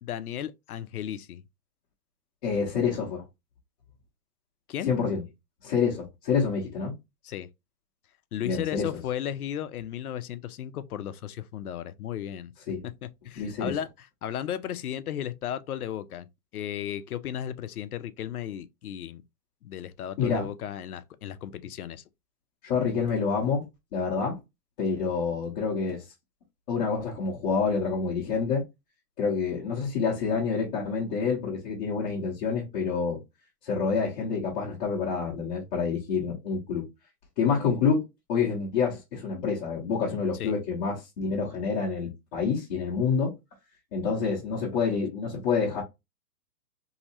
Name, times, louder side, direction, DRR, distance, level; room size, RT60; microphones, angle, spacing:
voice 1, 0.0-1.4 4.7-4.9 7.2-7.5 8.3-12.5 12.8-16.3 16.5-19.2 19.6-22.0 40.4-40.5, left 10 dB, 65° left, 0.6 m, -35 dB
voice 2, 2.4-3.2 4.8-5.2 5.6-6.9 8.4-8.9 12.7-12.8 13.4-13.8 20.2-20.5 22.6-23.7 23.9-24.4 24.8-26.0 26.7-28.6 29.2-33.2 33.6-36.9 37.4-38.0 38.3-43.3 43.9-45.8, left 5 dB, 25° left, 0.7 m, -27 dB
3.0 x 2.8 x 2.7 m
hypercardioid pair, 145°, 49 cm